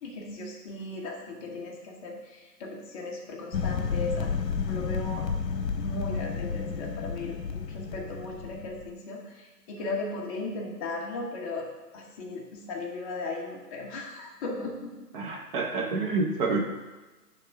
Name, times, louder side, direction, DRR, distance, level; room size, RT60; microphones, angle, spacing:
voice 1, 0.0-5.3 5.8-11.7 11.9-15.1, left 2 dB, 20° left, -1 dB, 1.0 m, -37 dB
sound 1, 3.5-8.9, left 5 dB, 75° left, 1.0 m, -31 dB
voice 2, 15.1-16.6, right 3 dB, 30° right, 1 dB, 0.9 m, -28 dB
10.5 x 3.7 x 6.6 m, 1.2 s
hypercardioid pair, 145°, 49 cm